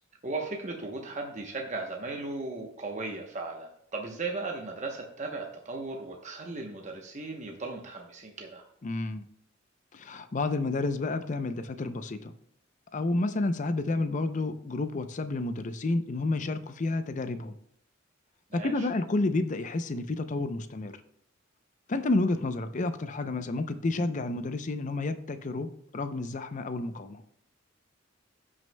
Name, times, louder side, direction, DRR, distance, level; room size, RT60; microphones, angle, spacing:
voice 1, 0.2-8.6 18.5-18.9, right 3 dB, 35° right, 1 dB, 0.9 m, -37 dB
voice 2, 8.8-9.2 9.9-12.3 12.9-17.6 18.5-21.0 21.9-27.2, left 2 dB, 40° left, 10 dB, 0.5 m, -30 dB
15.5 x 6.2 x 2.2 m, 0.72 s
head